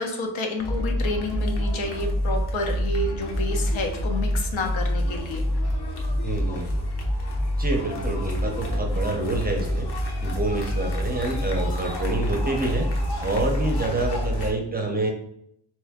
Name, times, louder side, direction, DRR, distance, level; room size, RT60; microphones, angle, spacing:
voice 1, 0.0-5.4, left 2 dB, 85° left, 3 dB, 0.9 m, -29 dB
sound 1, 0.6-14.5, equal, 60° left, 0.9 m, -27 dB
voice 2, 6.2-6.8 7.6-9.9 10.2-12.9 13.2-15.1, right 2 dB, 20° right, 1 dB, 0.5 m, -27 dB
3.6 x 3.0 x 3.5 m, 0.73 s
wide cardioid pair, 160°, 46 cm